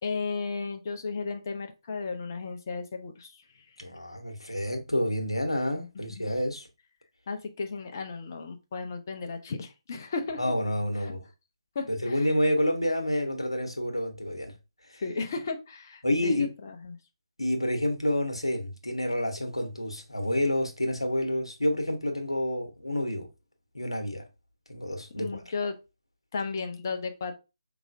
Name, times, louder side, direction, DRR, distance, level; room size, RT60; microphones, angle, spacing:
voice 1, 0.0-3.4 6.0-6.3 7.3-10.4 11.0-11.1 11.7-12.3 15.0-17.0 25.2-25.8 26.3-27.3, left 4 dB, 35° left, 0.7 m, -34 dB
voice 2, 3.8-6.7 10.4-11.2 11.9-14.5 14.9-15.0 16.0-16.5 17.4-23.3 23.7-24.2 24.7-25.4, left 1 dB, 85° left, 1.2 m, -29 dB
4.9 x 3.0 x 2.6 m
figure-of-eight pair, 145°, 3 cm